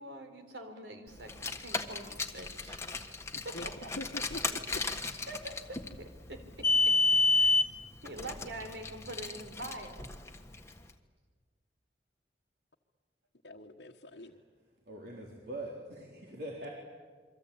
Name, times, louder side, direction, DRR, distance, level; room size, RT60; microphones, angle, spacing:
voice 1, 0.0-3.1 3.4-3.9 5.3-5.6 6.0-6.7 7.1-7.7 8.0-10.1, right 1 dB, 80° right, 7 dB, 4.1 m, -45 dB
Car, 1.2-10.7, left 3 dB, 15° left, 1.5 m, -31 dB
voice 2, 3.3-3.7 4.0-5.1 13.4-14.3, left 1 dB, 75° left, -1 dB, 1.5 m, -44 dB
voice 3, 14.9-16.7, right 1 dB, 60° right, -2 dB, 4.1 m, -43 dB
28.5 x 24.0 x 8.7 m, 1.5 s
head